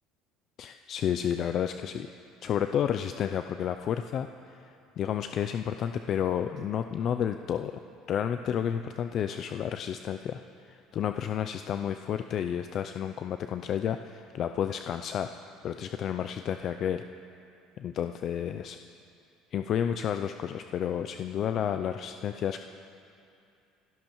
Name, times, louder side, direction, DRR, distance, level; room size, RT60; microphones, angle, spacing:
voice 1, 0.6-2.1 2.4-7.7 8.1-15.3 15.6-17.0 17.8-18.8 19.5-22.6, left 9 dB, 40° left, 8 dB, 0.3 m, -31 dB
26.0 x 12.0 x 3.0 m, 2.6 s
cardioid pair, 155°, 0 cm